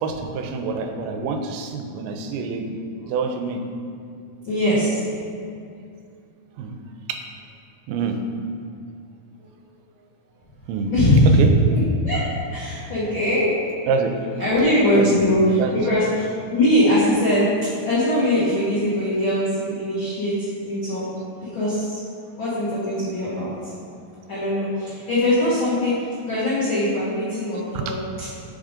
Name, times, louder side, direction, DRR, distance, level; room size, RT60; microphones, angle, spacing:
voice 1, 0.0-2.8 3.1-3.6 6.6-6.8 7.1-7.2 7.9-8.2 10.7-10.9 11.4-11.5 13.9-14.1 14.9-15.7 27.9-28.0, right 5 dB, 90° right, 5 dB, 2.5 m, -26 dB
voice 2, 4.4-5.0 10.9-11.4 11.7-12.2 12.5-13.5 14.4-17.5 17.8-21.1 21.4-22.0 22.4-23.7 24.3-28.3, left 1 dB, 75° left, -11 dB, 1.1 m, -21 dB
5.7 x 3.6 x 5.0 m, 2.5 s
omnidirectional pair, 4.3 m